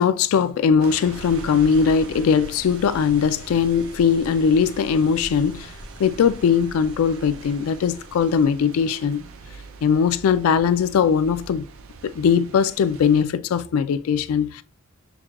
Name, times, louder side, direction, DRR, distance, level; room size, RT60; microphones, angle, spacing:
voice 1, 0.0-5.7 6.0-9.2 9.8-11.6 12.0-14.6, left 6 dB, 90° left, 0.3 m, -20 dB
sound 1, 0.8-13.2, right 5 dB, 70° right, 0.4 m, -43 dB
sound 2, 1.1-8.4, equal, 20° right, 0.9 m, -43 dB
5.9 x 2.2 x 2.3 m
head